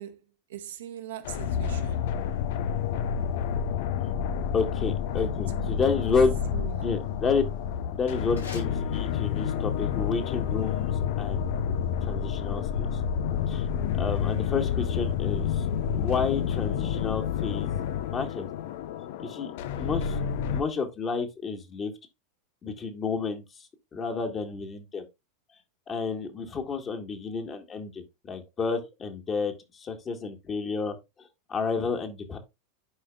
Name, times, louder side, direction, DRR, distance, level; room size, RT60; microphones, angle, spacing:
voice 1, 0.0-2.1 5.1-5.9 6.5-6.9, right 11 dB, 70° right, 1.4 m, -42 dB
sound 1, 1.2-20.6, left 8 dB, 60° left, 0.6 m, -29 dB
voice 2, 4.5-6.3 6.8-7.4 7.9-10.9 11.2-11.4 12.1-13.0 13.5-13.7 13.9-15.7 16.0-17.8 18.1-18.5 19.2-19.5 19.8-20.2 20.4-21.9 22.6-23.7 23.9-25.1 25.9-32.4, left 5 dB, 30° left, 1.9 m, -30 dB
sound 2, 8.1-9.6, left 5 dB, 85° left, 5.5 m, -47 dB
11.0 x 5.0 x 2.4 m
figure-of-eight pair, 90°, 0 cm